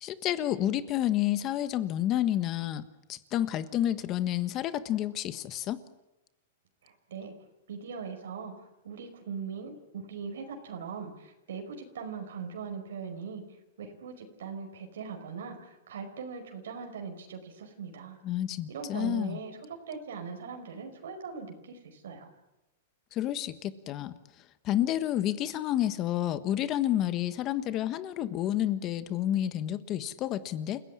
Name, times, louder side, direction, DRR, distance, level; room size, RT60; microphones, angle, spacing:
voice 1, 0.0-2.8 3.1-5.8 18.2-19.4 23.1-24.1 24.6-30.8, left 12 dB, 30° left, 12 dB, 1.4 m, -30 dB
voice 2, 6.8-7.3 7.7-9.8 10.1-13.4 13.8-18.2 18.7-22.3, right 6 dB, 85° right, 4 dB, 5.0 m, -40 dB
29.0 x 16.5 x 9.8 m, 0.96 s
supercardioid pair, 150°, 0 cm